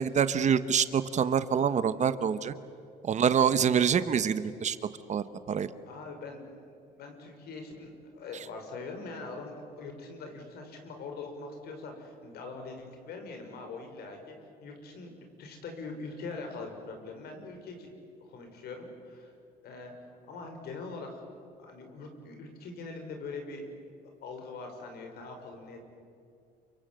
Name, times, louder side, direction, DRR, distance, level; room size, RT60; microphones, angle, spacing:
voice 1, 0.0-2.5 3.0-4.8 5.1-5.7, right 7 dB, 45° right, 13 dB, 1.2 m, -26 dB
voice 2, 5.9-6.4 6.9-14.3 14.6-17.9 18.2-19.3 19.6-19.9 20.3-21.2 21.6-23.7 24.2-25.8, left 3 dB, 70° left, 4 dB, 5.9 m, -42 dB
29.0 x 25.0 x 7.8 m, 2.5 s
cardioid pair, 110°, 17 cm